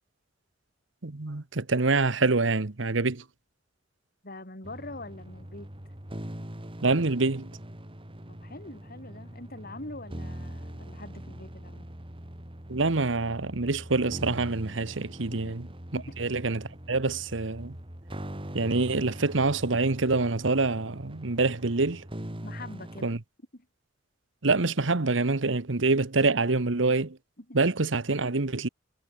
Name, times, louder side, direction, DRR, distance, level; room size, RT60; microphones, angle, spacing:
voice 1, 1.0-3.2 6.8-7.5 12.7-15.6 16.2-17.8 18.5-22.0 23.0-23.2 24.4-27.2 27.5-28.7, right 3 dB, 75° right, 1.2 m, -26 dB
voice 2, 4.2-5.7 8.3-11.9 15.3-15.4 15.9-16.2 22.4-23.1 23.5-23.7 27.4-27.6, left 2 dB, 50° left, 6.6 m, -44 dB
sound 1, 4.6-23.0, equal, 30° right, 2.9 m, -42 dB
head